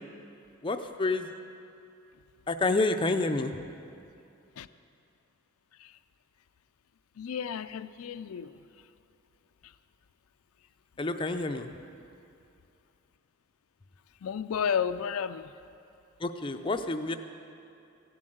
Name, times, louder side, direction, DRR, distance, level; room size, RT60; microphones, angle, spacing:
voice 1, 0.6-1.3 2.5-3.7 11.0-11.7 16.2-17.1, left 2 dB, 25° left, 7 dB, 0.4 m, -29 dB
voice 2, 7.2-8.5 14.2-15.5, left 7 dB, 80° left, 12 dB, 0.4 m, -32 dB
15.5 x 7.5 x 7.8 m, 2.6 s
head